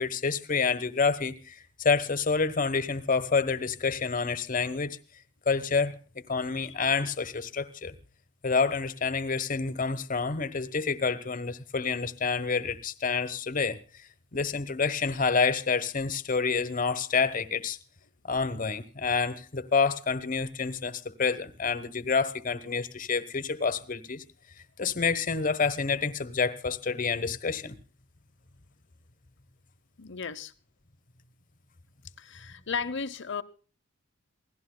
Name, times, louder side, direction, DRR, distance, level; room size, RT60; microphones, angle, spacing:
voice 1, 0.0-5.0 5.5-8.0 8.4-13.8 14.3-17.8 18.2-24.2 24.8-27.7, left 5 dB, 40° left, 1.1 m, -28 dB
voice 2, 30.0-30.5 32.2-33.4, left 5 dB, 60° left, 0.9 m, -35 dB
28.0 x 17.0 x 2.2 m
head